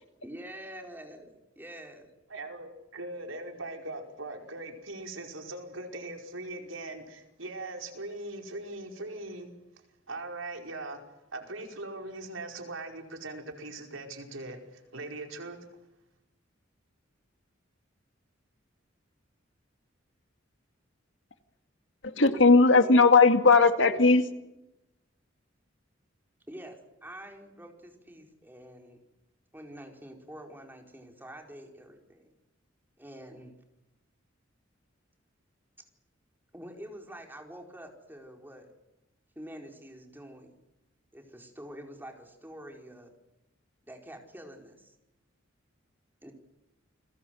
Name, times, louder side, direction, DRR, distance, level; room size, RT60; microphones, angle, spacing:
voice 1, 0.2-2.1 26.5-29.0 29.5-32.3 33.0-33.6 36.5-38.7 39.3-40.5 41.1-43.1 43.9-45.0 46.2-46.3, right 1 dB, 10° right, 2 dB, 4.8 m, -46 dB
voice 2, 2.3-9.5 10.1-11.0 11.3-15.7, right 2 dB, 85° right, 3 dB, 5.1 m, -40 dB
voice 3, 22.0-24.3, left 3 dB, 65° left, 8 dB, 2.2 m, -18 dB
30.0 x 22.0 x 7.9 m, 0.94 s
head